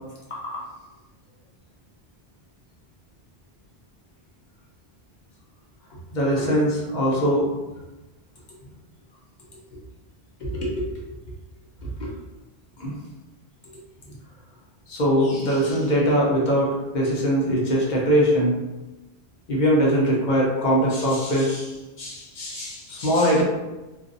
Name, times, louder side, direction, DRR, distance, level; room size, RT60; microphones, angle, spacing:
voice 1, 0.3-0.6 6.1-7.5 10.4-10.9 12.0-12.1 12.8-12.9 14.9-18.5 19.5-23.4, equal, 50° left, -4 dB, 0.7 m, -22 dB
2.4 x 2.0 x 2.5 m, 1.1 s
omnidirectional pair, 1.1 m